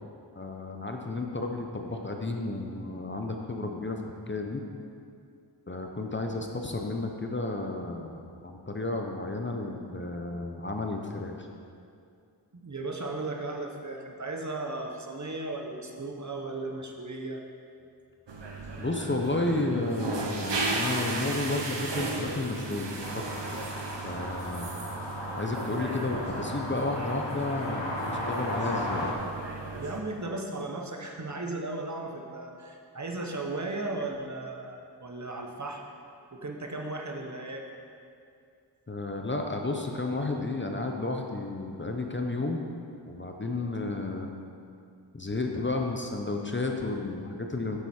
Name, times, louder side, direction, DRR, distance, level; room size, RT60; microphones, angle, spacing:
voice 1, 0.3-4.6 5.7-11.5 18.8-23.6 24.0-24.7 25.4-29.1 38.9-42.6 43.1-44.3 45.1-47.8, left 2 dB, 25° left, 2 dB, 0.7 m, -32 dB
voice 2, 12.5-17.4 29.7-35.8 36.3-37.6, right 2 dB, 40° right, 2 dB, 1.0 m, -36 dB
sound 1, 18.3-30.0, right 3 dB, 75° right, 1.0 m, -35 dB
sound 2, 23.0-29.1, left 1 dB, 80° left, 1.2 m, -36 dB
8.4 x 7.9 x 4.3 m, 2.4 s
wide cardioid pair, 75°, 43 cm